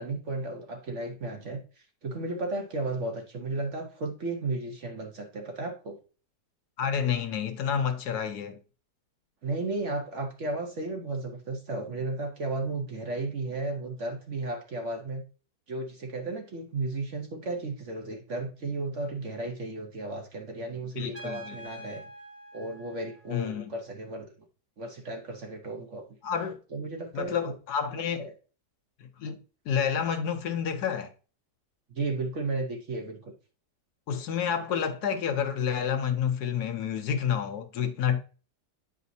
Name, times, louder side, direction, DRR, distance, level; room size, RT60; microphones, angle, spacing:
voice 1, 0.0-1.6 2.0-6.0 9.4-15.2 15.7-22.0 22.5-24.5 24.8-26.0 26.7-27.4 28.2-28.3 31.9-33.3, right 2 dB, 50° right, 1.1 m, -34 dB
voice 2, 6.8-8.6 21.0-21.6 23.3-23.7 26.2-26.6 27.1-28.3 29.2-29.4 29.7-31.1 34.1-38.2, left 8 dB, 70° left, 1.2 m, -29 dB
Trumpet, 21.1-23.8, right 2 dB, 10° right, 0.9 m, -46 dB
9.2 x 5.1 x 2.7 m
omnidirectional pair, 1.9 m